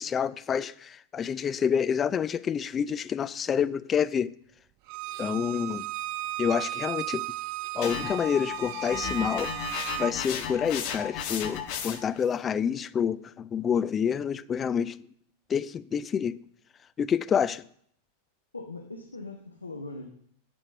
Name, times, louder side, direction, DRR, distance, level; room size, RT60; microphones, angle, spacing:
voice 1, 0.0-4.3 5.2-5.9 6.4-7.2 7.7-9.5 10.0-15.0 15.5-16.4 17.0-17.6, left 7 dB, 25° left, 0.4 m, -28 dB
Bowed string instrument, 4.9-10.1, right 17 dB, 45° right, 0.4 m, -35 dB
sound 1, 7.8-12.2, left 8 dB, 45° left, 1.5 m, -35 dB
voice 2, 18.5-20.1, left 3 dB, 80° left, 1.2 m, -40 dB
8.8 x 6.2 x 8.3 m
figure-of-eight pair, 90°, 0 cm